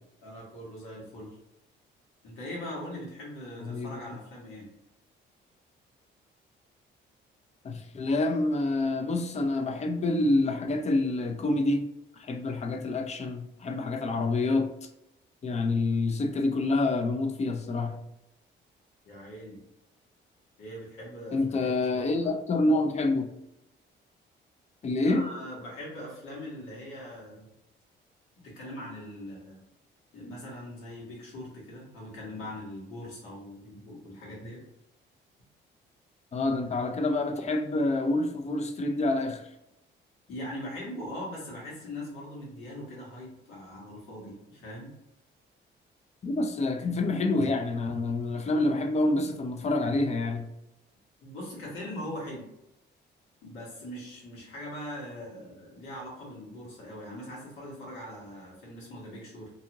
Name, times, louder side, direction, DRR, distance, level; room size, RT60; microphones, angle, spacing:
voice 1, 0.2-1.3 2.2-4.7 19.0-19.6 20.6-22.3 25.1-27.5 28.6-29.6 30.1-34.6 40.3-44.9 51.2-52.5 53.4-59.5, left 1 dB, 90° left, -4 dB, 1.3 m, -41 dB
voice 2, 3.6-4.2 7.6-11.9 12.2-14.7 15.4-18.0 21.3-23.3 24.8-25.3 36.3-39.4 46.2-50.5, left 2 dB, 35° left, 5 dB, 0.4 m, -27 dB
2.6 x 2.4 x 2.8 m, 0.84 s
cardioid pair, 90°, 20 cm